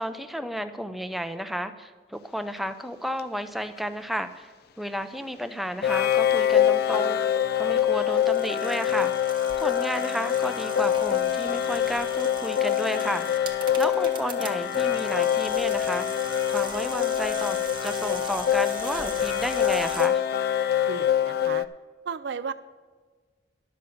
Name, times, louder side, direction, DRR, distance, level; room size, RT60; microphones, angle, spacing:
voice 1, 0.0-4.5 4.8-7.2 7.6-9.3 9.6-16.2 16.5-17.6 17.8-20.2, equal, ahead, 9 dB, 0.5 m, -32 dB
sound 1, 3.2-3.3 5.8-21.6, left 10 dB, 55° left, 0.4 m, -25 dB
sound 2, 8.1-20.1, right 5 dB, 25° right, 1.2 m, -42 dB
voice 2, 20.9-21.7 22.1-22.5, right 6 dB, 65° right, 12 dB, 0.4 m, -34 dB
11.5 x 6.8 x 6.9 m, 1.5 s
head